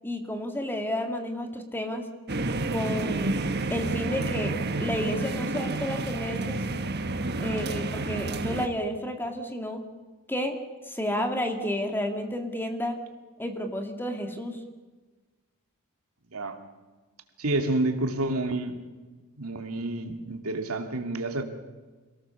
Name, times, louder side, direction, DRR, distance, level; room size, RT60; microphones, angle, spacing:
voice 1, 0.0-2.0 2.7-3.4 3.7-4.5 4.8-6.6 7.4-9.8 10.3-10.6 10.9-13.0 13.4-14.6, left 1 dB, 10° left, 4 dB, 2.2 m, -31 dB
sound 1, 2.3-8.7, right 2 dB, 50° right, 1.4 m, -30 dB
voice 2, 17.4-18.8 19.4-21.4, right 2 dB, 80° right, 5 dB, 2.4 m, -29 dB
26.5 x 19.0 x 7.0 m, 1.3 s
head